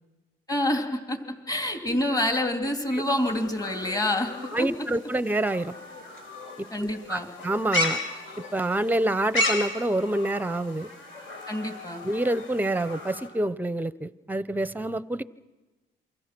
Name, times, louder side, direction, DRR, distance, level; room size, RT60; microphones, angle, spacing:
voice 1, 0.5-1.2 1.5-4.3 4.6-4.7 6.7-7.3 11.5-12.0, left 1 dB, 20° left, 4 dB, 3.0 m, -27 dB
sound 1, 3.0-13.3, left 2 dB, 75° left, 5.8 m, -34 dB
voice 2, 4.5-5.7 6.6-6.7 7.1-8.0 8.5-10.9 12.0-15.2, right 1 dB, 10° right, 17 dB, 0.7 m, -27 dB
27.5 x 24.5 x 6.1 m, 1.2 s
cardioid pair, 90°, 20 cm